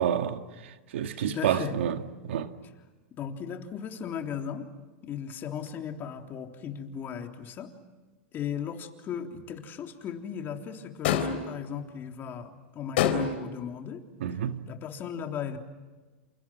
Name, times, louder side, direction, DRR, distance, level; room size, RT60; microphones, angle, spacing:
voice 1, 0.0-2.5 14.2-14.6, right 9 dB, 80° right, 2.2 m, -29 dB
voice 2, 1.2-1.8 3.2-4.7 5.0-7.7 8.3-14.0 14.7-15.6, left 8 dB, 35° left, 3.4 m, -37 dB
sound 1, 11.0-11.6 13.0-13.6, left 8 dB, 65° left, 3.9 m, -26 dB
29.5 x 28.5 x 6.2 m
hypercardioid pair, 125°, 6 cm